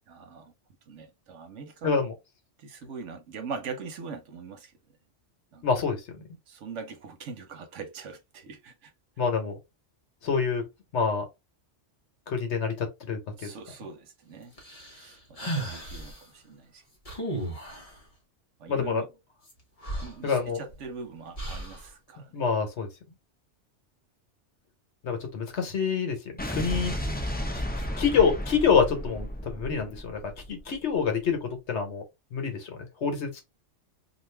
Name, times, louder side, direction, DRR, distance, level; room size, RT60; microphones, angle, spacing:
voice 1, 0.1-0.5 0.9-1.9 2.6-4.7 5.5-5.6 6.5-8.9 13.3-14.5 14.9-16.8 18.6-19.1 20.0-22.4, right 5 dB, 85° right, 1.1 m, -42 dB
voice 2, 1.8-2.1 5.6-6.0 9.2-9.6 10.2-10.6 10.9-11.2 12.3-13.5 18.7-19.0 20.2-20.6 22.3-22.9 25.0-26.2 26.5-27.0 27.5-27.6 28.0-30.2 30.5-32.0 32.3-33.4, left 6 dB, 70° left, 1.2 m, -26 dB
sound 1, 14.6-16.2 17.1-18.0 19.5-19.6 19.8-20.8 21.4-21.9, right 1 dB, 35° left, 0.9 m, -35 dB
Explosion, 26.4-30.7, equal, 15° left, 0.4 m, -33 dB
2.5 x 2.5 x 3.2 m
omnidirectional pair, 1.2 m